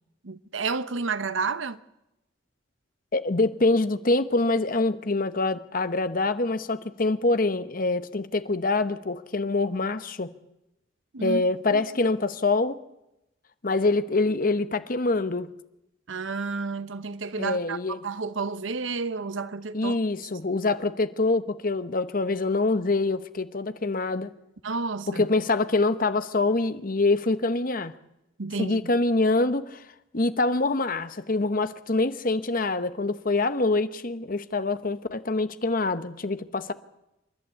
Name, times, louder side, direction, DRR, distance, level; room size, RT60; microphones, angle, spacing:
voice 1, 0.2-1.8 11.1-11.4 11.7-11.8 16.1-20.0 24.6-25.2 28.4-28.8, right 4 dB, 80° right, 0.9 m, -31 dB
voice 2, 3.1-10.3 11.2-12.8 13.6-15.5 17.4-18.0 19.7-24.3 25.1-27.9 28.6-29.8 30.1-36.7, left 3 dB, 45° left, 1.0 m, -25 dB
27.5 x 11.5 x 8.4 m
head